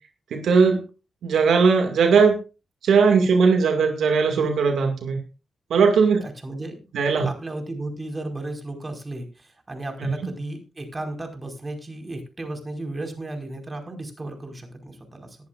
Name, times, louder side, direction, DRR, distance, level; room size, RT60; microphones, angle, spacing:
voice 1, 0.3-0.8 1.2-2.4 2.8-5.2 5.7-6.2 6.9-7.3 10.0-10.1, right 5 dB, 85° right, 4 dB, 2.1 m, -18 dB
voice 2, 6.2-6.9 7.2-15.4, right 2 dB, 30° right, 4 dB, 4.9 m, -34 dB
19.0 x 11.5 x 2.5 m, 0.31 s
cardioid pair, 60°, 0 cm